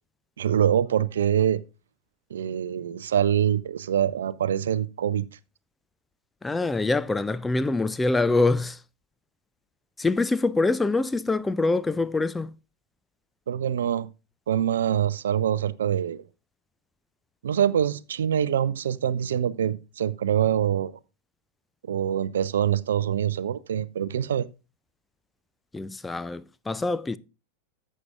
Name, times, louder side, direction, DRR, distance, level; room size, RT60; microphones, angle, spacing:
voice 1, 0.4-1.6 2.3-5.3 13.5-14.1 14.5-16.2 17.4-20.9 21.9-24.5, right 9 dB, 65° right, 0.4 m, -24 dB
voice 2, 6.4-8.8 10.0-12.5 25.7-27.2, left 3 dB, 10° left, 0.4 m, -25 dB
14.0 x 7.3 x 2.4 m
figure-of-eight pair, 90°, 0 cm